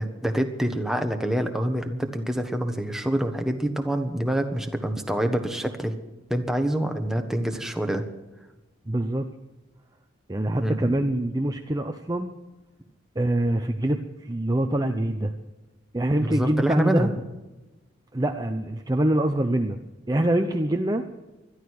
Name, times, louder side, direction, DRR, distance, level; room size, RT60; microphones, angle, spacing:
voice 1, 0.0-6.0 6.3-8.0 10.6-10.9 16.3-17.1, right 1 dB, ahead, 5 dB, 1.3 m, -26 dB
voice 2, 8.9-9.3 10.3-12.3 13.2-15.3 15.9-17.1 18.1-19.8 20.1-21.0, right 1 dB, 20° right, 5 dB, 0.7 m, -25 dB
21.0 x 13.0 x 4.8 m, 1.1 s
head